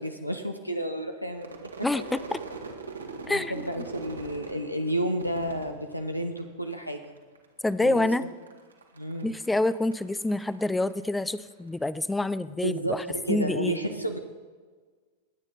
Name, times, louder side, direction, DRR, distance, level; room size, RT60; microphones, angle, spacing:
voice 1, 0.0-1.9 3.3-7.1 7.8-8.1 9.0-9.4 12.6-14.2, right 1 dB, 90° left, 6 dB, 0.9 m, -31 dB
Crowd / Fireworks, 1.3-6.7 7.0-7.7 8.0-11.5, right 4 dB, 75° right, 1.7 m, -43 dB
voice 2, 1.8-2.4 3.3-3.6 7.6-8.3 9.2-13.8, left 2 dB, 5° left, 17 dB, 0.5 m, -27 dB
21.0 x 9.0 x 4.1 m, 1.5 s
figure-of-eight pair, 90°, 0 cm